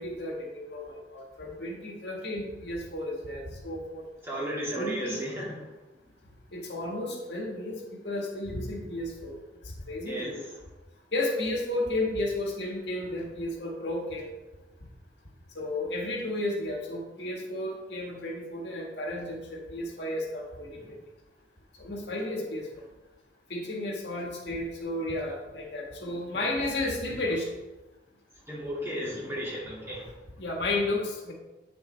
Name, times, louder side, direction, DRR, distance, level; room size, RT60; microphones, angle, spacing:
voice 1, 0.0-4.0 4.8-5.2 6.5-9.3 9.6-10.4 11.1-14.3 15.5-21.0 21.8-22.8 23.5-27.5 30.4-31.3, left 1 dB, 75° left, 0 dB, 1.6 m, -33 dB
voice 2, 4.2-5.7 10.1-10.3 20.8-20.9 28.5-30.2, equal, 15° right, -5 dB, 2.2 m, -34 dB
7.9 x 6.9 x 3.3 m, 1.1 s
head